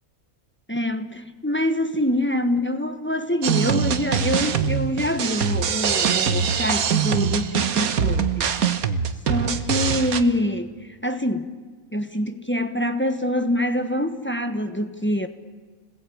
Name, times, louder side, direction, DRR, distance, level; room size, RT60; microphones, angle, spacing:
voice 1, 0.7-8.5 9.3-10.7 11.0-11.5 11.9-15.3, left 1 dB, 10° left, 7 dB, 1.2 m, -25 dB
sound 1, 3.4-10.2, right 7 dB, 85° right, 1.6 m, -23 dB
30.0 x 20.5 x 8.6 m, 1.5 s
omnidirectional pair, 1.5 m